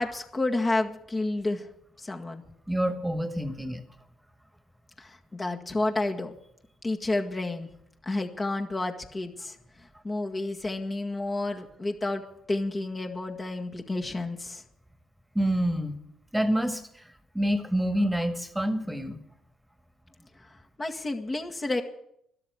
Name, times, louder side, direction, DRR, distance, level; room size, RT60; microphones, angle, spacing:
voice 1, 0.0-1.7 2.0-2.4 5.0-6.3 6.8-7.7 8.0-12.2 12.5-14.6 20.4-21.8, left 2 dB, 30° left, 3 dB, 1.9 m, -30 dB
voice 2, 2.7-3.8 15.4-16.0 16.3-19.2, equal, 5° right, 10 dB, 1.9 m, -27 dB
13.0 x 12.0 x 8.2 m, 0.71 s
figure-of-eight pair, 45°, 0 cm